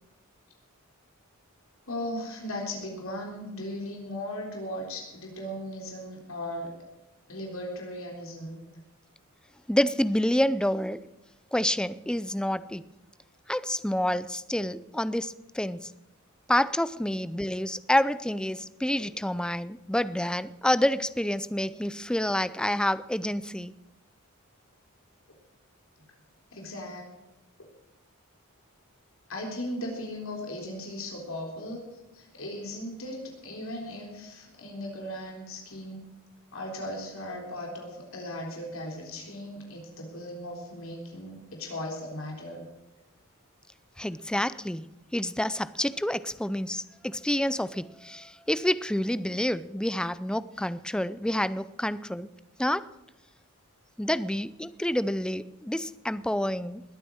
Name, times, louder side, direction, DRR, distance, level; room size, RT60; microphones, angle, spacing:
voice 1, 1.9-6.7 7.3-8.6 26.5-27.0 29.3-31.9 32.1-33.2 33.4-36.1 36.5-42.6, left 1 dB, 70° left, 3.8 m, -37 dB
voice 2, 9.7-11.0 11.5-12.8 13.5-15.9 16.5-23.7 44.0-44.9 45.1-52.3 52.6-52.9 54.0-56.8, left 1 dB, 5° left, 0.4 m, -28 dB
20.5 x 9.1 x 6.4 m
head